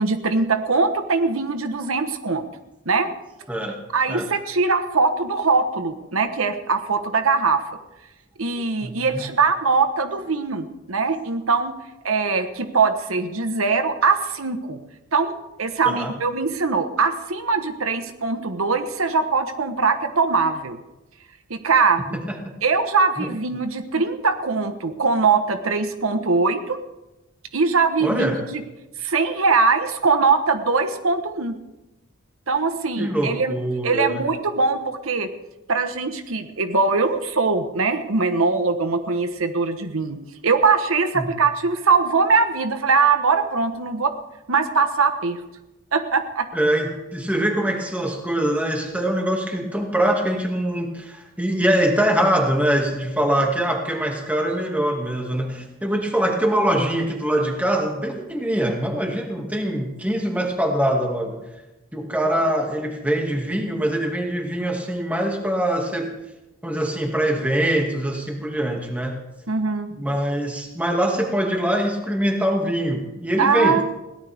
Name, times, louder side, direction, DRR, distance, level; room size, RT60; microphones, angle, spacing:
voice 1, 0.0-2.4 2.8-3.1 3.9-7.6 8.4-11.7 12.0-14.8 15.1-20.8 21.5-22.2 22.6-26.8 27.5-28.6 29.0-31.6 32.5-33.5 33.8-35.3 35.7-40.2 40.4-44.1 44.5-45.4 45.9-46.5 69.5-69.9 73.4-73.8, right 4 dB, 90° right, 8 dB, 1.2 m, -21 dB
voice 2, 8.8-9.3 15.8-16.1 22.1-22.5 23.2-23.3 28.0-28.4 33.0-34.2 41.1-41.4 46.5-61.4 61.9-66.1 66.6-69.2 70.0-73.8, right 1 dB, 5° right, 1 dB, 2.2 m, -23 dB
22.0 x 17.0 x 3.6 m, 1.0 s
head